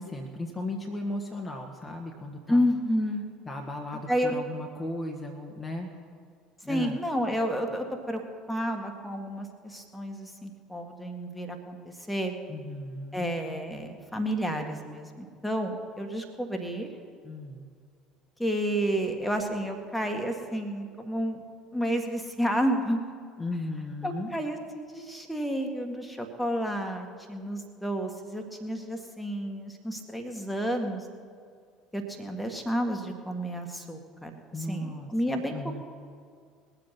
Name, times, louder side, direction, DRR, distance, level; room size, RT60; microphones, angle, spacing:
voice 1, 0.0-2.7 3.5-5.9 6.6-7.0 12.5-13.3 17.2-17.7 23.4-24.3 34.5-35.8, left 2 dB, 20° left, 2 dB, 1.5 m, -36 dB
voice 2, 2.5-3.2 4.1-4.3 6.7-8.2 8.5-12.3 13.1-16.9 18.4-21.4 21.7-23.0 24.0-31.0 31.9-35.5, equal, 5° left, 3 dB, 1.9 m, -30 dB
21.0 x 7.9 x 5.9 m, 2.1 s
figure-of-eight pair, 60°, 0 cm